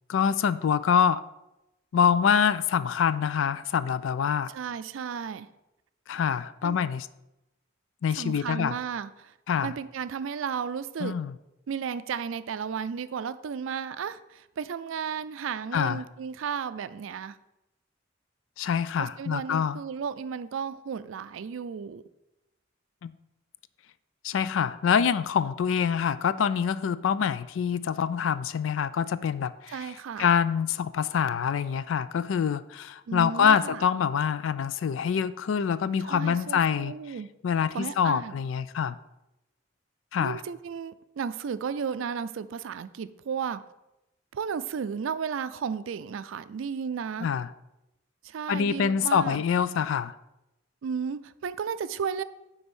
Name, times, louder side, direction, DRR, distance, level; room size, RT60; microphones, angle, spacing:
voice 1, 0.1-1.2 1.9-4.5 6.1-7.1 8.0-8.8 9.5-9.7 11.0-11.3 15.7-16.0 18.6-19.8 23.0-23.1 24.2-29.9 30.2-36.9 37.4-39.0 40.1-40.4 47.2-47.5 48.5-50.1, left 7 dB, 80° left, 0.3 m, -25 dB
voice 2, 4.5-5.5 6.6-6.8 8.2-9.3 9.6-11.2 11.7-17.4 19.0-22.0 29.7-30.3 33.1-33.8 36.1-37.3 37.7-38.4 40.2-43.6 44.3-47.3 48.2-49.4 50.8-52.2, right 6 dB, 85° right, 0.4 m, -34 dB
9.4 x 3.5 x 5.4 m
head